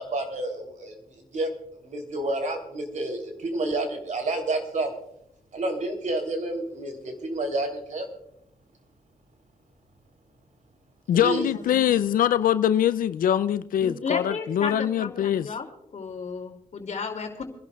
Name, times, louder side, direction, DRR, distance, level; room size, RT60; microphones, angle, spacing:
voice 1, 0.0-1.5 1.8-5.0 5.5-8.1 11.1-11.5, right 2 dB, 60° right, 3.3 m, -29 dB
voice 2, 11.1-15.5, left 10 dB, 75° left, 0.5 m, -23 dB
voice 3, 13.8-15.7 15.9-17.4, left 5 dB, 55° left, 2.8 m, -33 dB
28.0 x 11.5 x 2.4 m
cardioid pair, 65°, 14 cm